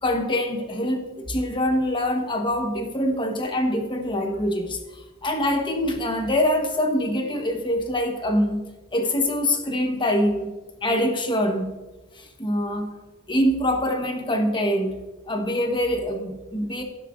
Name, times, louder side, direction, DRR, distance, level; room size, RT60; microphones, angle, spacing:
voice 1, 0.0-4.8 5.2-8.6 8.9-10.5 10.8-11.7 12.2-12.9 13.3-14.9 15.3-16.8, left 1 dB, 25° left, 4 dB, 1.1 m, -24 dB
16.0 x 7.4 x 2.5 m, 1.1 s
head